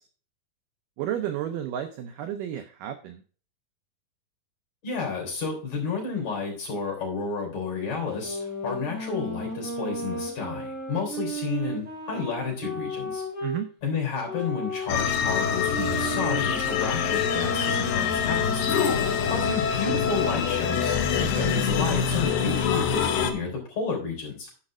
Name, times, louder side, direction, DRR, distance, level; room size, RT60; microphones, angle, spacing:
voice 1, 1.0-3.2 13.4-13.7 21.2-21.6, right 10 dB, 80° right, 8 dB, 1.9 m, -32 dB
voice 2, 4.8-13.2 13.8-18.9 19.3-21.0 21.4-24.5, left 4 dB, 45° left, 0 dB, 4.6 m, -31 dB
sound 1, 8.1-13.6 14.2-19.4, equal, 20° right, 4.1 m, -35 dB
sound 2, 14.9-23.3, left 7 dB, 70° left, 2.4 m, -25 dB
10.5 x 5.3 x 4.8 m, 0.41 s
omnidirectional pair, 4.5 m